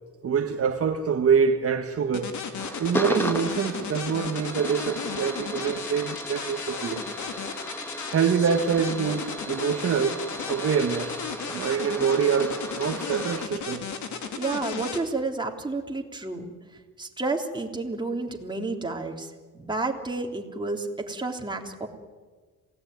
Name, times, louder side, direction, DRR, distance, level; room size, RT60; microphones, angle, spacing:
voice 1, 0.2-2.4 2.8-7.0 8.1-10.2 10.5-11.2 11.5-13.9, right 6 dB, 50° right, 1.8 m, -25 dB
sound 1, 2.1-15.0, left 6 dB, 70° left, 3.2 m, -35 dB
sound 2, 2.5-13.5, equal, 5° left, 2.6 m, -36 dB
voice 2, 14.4-16.5 17.0-21.9, right 3 dB, 15° right, 3.4 m, -31 dB
27.5 x 17.5 x 9.5 m
cardioid pair, 90°, 30 cm